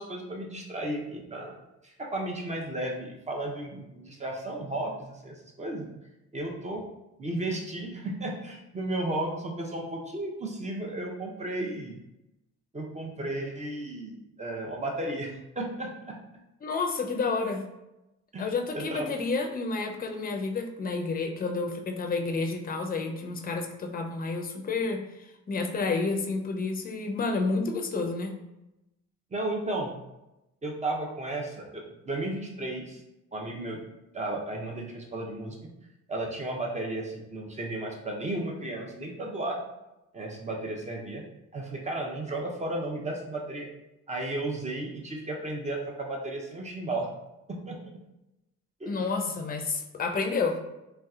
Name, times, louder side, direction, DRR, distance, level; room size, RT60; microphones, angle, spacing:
voice 1, 0.0-1.6 1.8-5.9 6.3-6.8 7.2-11.9 12.7-16.2 18.3-19.1 29.3-29.9 30.6-33.0 33.3-33.8 34.1-35.7 36.1-39.6 40.1-41.2 41.5-43.7 44.1-47.1 47.5-48.0 48.8-49.3, right 1 dB, 25° right, 0 dB, 0.6 m, -34 dB
voice 2, 16.6-17.6 18.4-25.0 25.5-28.3 48.8-50.6, left 4 dB, 30° left, 3 dB, 0.5 m, -30 dB
3.3 x 2.6 x 2.4 m, 0.93 s
cardioid pair, 90°, 30 cm